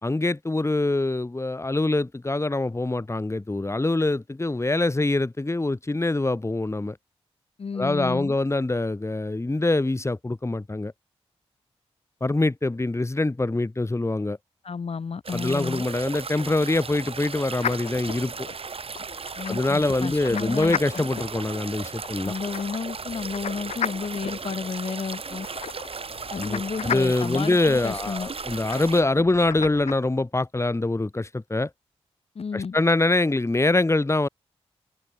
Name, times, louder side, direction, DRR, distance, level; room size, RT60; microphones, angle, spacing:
voice 1, 0.0-7.0 7.7-10.9 12.2-14.4 15.3-18.5 19.5-22.3 26.4-31.7 32.5-34.3, left 2 dB, 25° left, 2.6 m, -24 dB
voice 2, 7.6-8.4 14.6-15.8 19.4-21.1 22.2-25.5 26.3-28.3 32.3-32.8, left 5 dB, 65° left, 4.2 m, -32 dB
sound 1, 15.2-29.0, right 5 dB, 60° right, 3.5 m, -36 dB
sound 2, 17.6-29.9, left 8 dB, 90° left, 2.9 m, -36 dB
cardioid pair, 50°, 11 cm